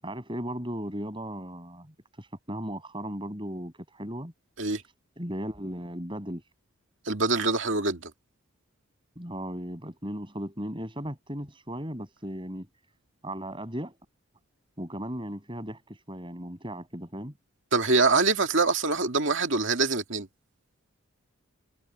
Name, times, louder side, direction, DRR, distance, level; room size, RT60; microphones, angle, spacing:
voice 1, 0.0-1.9 2.1-4.3 5.2-6.4 9.2-12.7 13.2-14.0 14.8-17.3, equal, 25° right, 7.8 m, -36 dB
voice 2, 7.1-8.1 17.7-20.3, right 3 dB, 60° right, 2.4 m, -24 dB
head